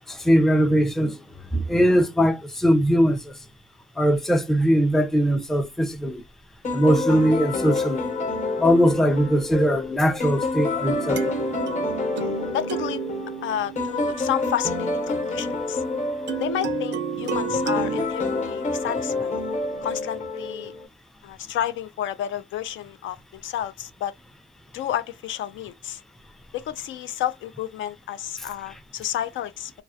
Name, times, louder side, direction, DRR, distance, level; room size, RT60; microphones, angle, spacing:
voice 1, 0.1-1.2 1.5-3.3 4.0-6.2 6.7-8.0 8.6-11.5, equal, ahead, 0.4 m, -20 dB
sound 1, 6.6-20.9, left 3 dB, 35° left, 0.8 m, -28 dB
sound 2, 10.8-15.1 16.3-18.0, right 9 dB, 60° right, 0.4 m, -32 dB
voice 2, 12.5-13.0 13.4-15.8 16.4-19.4 19.8-20.7 21.2-24.1 24.7-26.0 26.5-29.7, left 11 dB, 75° left, 0.4 m, -31 dB
2.2 x 2.0 x 2.7 m
cardioid pair, 90°, 20 cm